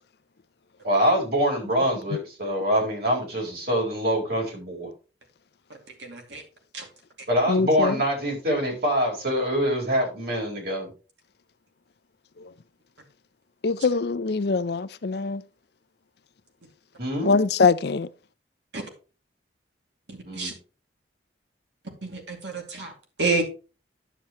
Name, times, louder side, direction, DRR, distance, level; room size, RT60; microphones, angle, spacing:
voice 1, 0.8-4.9 7.3-10.9 17.0-17.3 20.2-20.5, equal, 55° right, 4.4 m, -24 dB
voice 2, 6.1-6.4 6.7-6.8 18.7-18.8 20.1-20.5 22.0-22.9 23.2-23.4, right 3 dB, 75° right, 2.5 m, -28 dB
voice 3, 7.5-7.9 13.6-15.4 17.2-18.1, left 4 dB, 60° left, 0.5 m, -23 dB
10.0 x 7.5 x 3.1 m
head